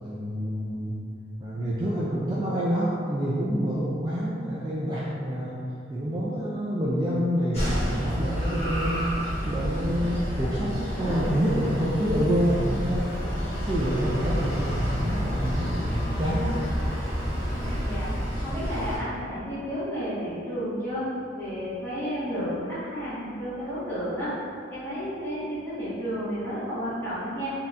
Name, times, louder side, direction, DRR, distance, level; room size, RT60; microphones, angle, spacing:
voice 1, 0.0-1.0 1.4-5.6 5.9-9.0 9.4-13.1 13.7-16.6, equal, 25° right, -7 dB, 0.3 m, -27 dB
sound 1, 7.5-19.0, equal, 35° left, 1.2 m, -29 dB
Race car auto racing / Accelerating revving vroom, 11.1-18.3, left 1 dB, 70° left, 0.8 m, -41 dB
voice 2, 17.5-18.1 18.4-21.1 21.4-24.3 24.7-27.5, equal, 15° left, -13 dB, 1.4 m, -32 dB
3.9 x 2.8 x 2.5 m, 2.4 s
head